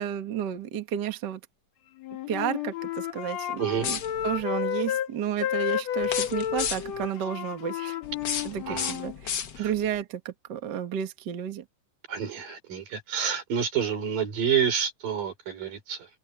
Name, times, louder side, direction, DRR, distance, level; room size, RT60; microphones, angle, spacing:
voice 1, 0.0-1.4 2.3-4.0 4.2-8.0 8.4-11.6, right 9 dB, 45° right, 1.6 m, -32 dB
Wind instrument woodwind instrument, 2.0-5.1 5.4-9.2, left 10 dB, 60° left, 2.5 m, -31 dB
voice 2, 3.6-3.9 8.4-8.9 9.6-9.7 12.1-16.1, right 7 dB, 90° right, 5.9 m, -29 dB
sound 1, 3.7-4.4 6.0-7.1 8.0-9.9, left 8 dB, 90° left, 0.9 m, -33 dB
omnidirectional pair, 3.8 m